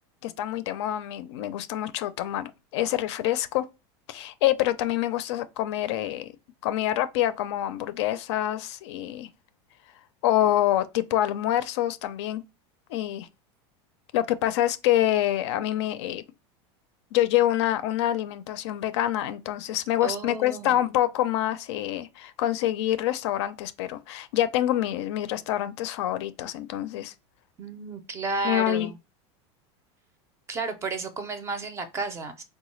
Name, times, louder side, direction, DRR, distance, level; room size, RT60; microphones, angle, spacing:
voice 1, 0.2-3.7 4.1-6.3 6.6-9.3 10.2-12.4 12.9-13.3 14.1-16.2 17.1-27.1 28.4-28.9, left 13 dB, 70° left, 0.4 m, -26 dB
voice 2, 20.0-20.9 27.6-29.0 30.5-32.4, right 3 dB, 20° right, 0.5 m, -32 dB
3.9 x 2.2 x 3.1 m
supercardioid pair, 155°, 15 cm